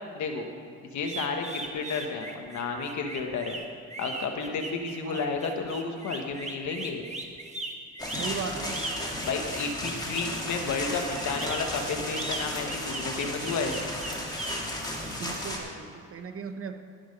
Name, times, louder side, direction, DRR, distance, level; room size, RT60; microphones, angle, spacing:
voice 1, 0.9-3.6 4.0-7.0 9.2-13.8, left 4 dB, 70° left, 4 dB, 1.4 m, -32 dB
sound 1, 1.0-10.4 11.1-14.6, right 2 dB, 25° right, 1.3 m, -38 dB
sound 2, 8.0-15.6, left 1 dB, 15° left, 2.4 m, -34 dB
voice 2, 8.1-9.3 15.1-16.7, right 5 dB, 45° right, 7 dB, 1.0 m, -38 dB
17.5 x 6.1 x 5.4 m, 2.5 s
cardioid pair, 90°, 30 cm